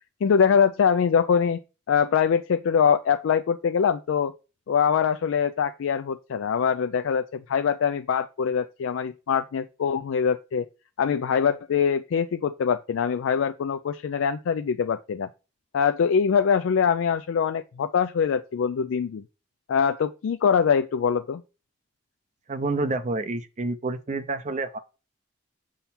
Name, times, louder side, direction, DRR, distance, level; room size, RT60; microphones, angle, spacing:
voice 1, 0.2-1.6 1.9-4.3 4.7-10.7 11.0-15.3 15.7-19.2 19.7-21.4, left 7 dB, 85° left, 0.4 m, -23 dB
voice 2, 22.5-24.8, right 3 dB, 40° right, 0.5 m, -28 dB
6.9 x 3.7 x 4.3 m
head